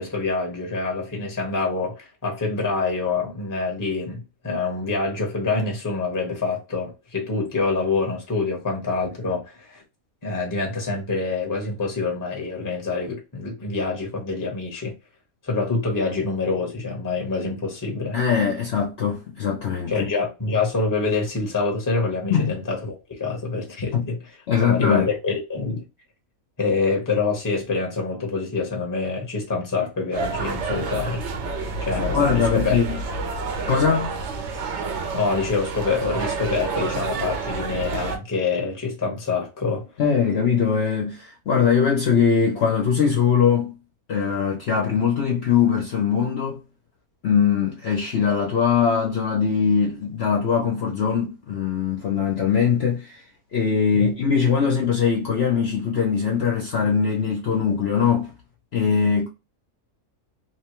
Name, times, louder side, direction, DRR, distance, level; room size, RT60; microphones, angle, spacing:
voice 1, 0.0-9.8 10.2-14.9 15.4-18.2 19.9-24.2 24.6-25.8 26.6-31.2 31.8-32.8 35.1-39.9 53.9-54.1, left 4 dB, 15° left, 0.8 m, -26 dB
voice 2, 18.1-20.1 22.3-22.6 23.9-24.1 24.5-25.1 32.1-33.0 33.7-34.1 40.0-43.8 44.1-46.6 47.2-53.2 53.5-58.3 58.7-59.3, left 6 dB, 55° left, 0.8 m, -21 dB
sound 1, 30.1-38.2, right 4 dB, 60° right, 0.8 m, -29 dB
3.0 x 2.2 x 2.9 m
omnidirectional pair, 1.6 m